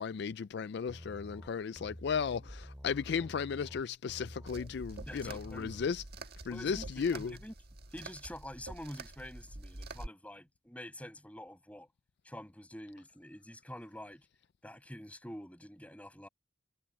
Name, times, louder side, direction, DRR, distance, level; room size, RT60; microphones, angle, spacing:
voice 1, 0.0-6.0 6.5-7.3, left 6 dB, 60° left, 0.3 m, -35 dB
sound 1, 0.9-5.9, equal, 10° right, 5.3 m, -49 dB
sound 2, 4.5-10.1, right 2 dB, 50° right, 1.8 m, -47 dB
voice 2, 5.1-5.8 6.5-7.5 7.9-11.9 12.2-14.3 14.6-16.3, left 1 dB, 5° left, 6.8 m, -47 dB
head